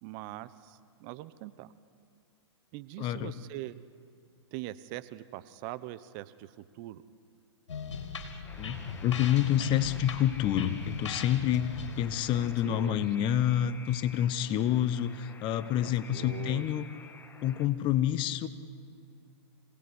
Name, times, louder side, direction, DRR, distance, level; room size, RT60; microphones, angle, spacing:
voice 1, 0.0-1.7 2.7-3.8 4.5-7.0 12.3-13.1 15.8-16.8, right 15 dB, 45° right, 15 dB, 1.0 m, -42 dB
voice 2, 3.0-3.3 8.6-16.9 17.4-18.5, left 11 dB, 35° left, 14 dB, 1.1 m, -28 dB
sound 1, 7.7-13.3, left 5 dB, 80° left, 3.4 m, -39 dB
Alarm, 8.4-17.7, left 4 dB, 15° left, 1.5 m, -51 dB
26.0 x 18.0 x 9.8 m, 2.2 s
hypercardioid pair, 125°, 15 cm